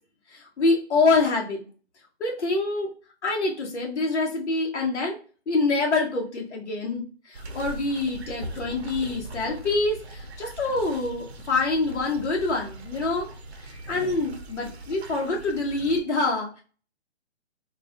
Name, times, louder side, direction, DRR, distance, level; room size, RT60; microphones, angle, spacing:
voice 1, 0.3-1.6 2.2-2.9 3.2-5.2 5.5-13.3 13.7-16.6, left 3 dB, 80° left, -1 dB, 0.9 m, -26 dB
sound 1, 7.3-16.0, right 2 dB, 65° right, 0.6 m, -40 dB
3.3 x 2.3 x 2.4 m, 0.37 s
hypercardioid pair, 175°, 34 cm